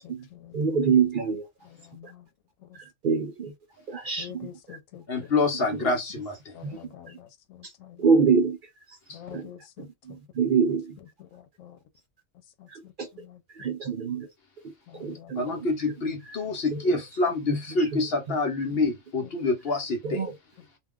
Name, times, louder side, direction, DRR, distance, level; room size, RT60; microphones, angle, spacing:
voice 1, 0.0-0.7 1.6-2.3 2.6-2.8 4.2-5.3 6.5-8.1 9.1-10.2 11.2-11.8 12.6-13.4 14.9-15.6 16.4-16.5, left 10 dB, 90° left, 1.0 m, -47 dB
voice 2, 0.5-1.5 2.0-2.1 2.7-3.5 3.9-4.8 5.7-5.9 6.6-6.8 7.1-7.2 7.6-7.7 8.0-9.0 9.3-9.5 9.8-11.0 12.7-13.1 13.5-14.3 14.6-15.4 16.3-16.4 16.7-17.0 17.5-18.0 18.3-18.4 18.7-18.8 20.0-20.3, right 5 dB, 60° right, 0.5 m, -27 dB
voice 3, 5.1-6.6 9.1-9.2 15.3-20.2, left 3 dB, 55° left, 0.9 m, -27 dB
2.5 x 2.2 x 3.4 m
omnidirectional pair, 1.3 m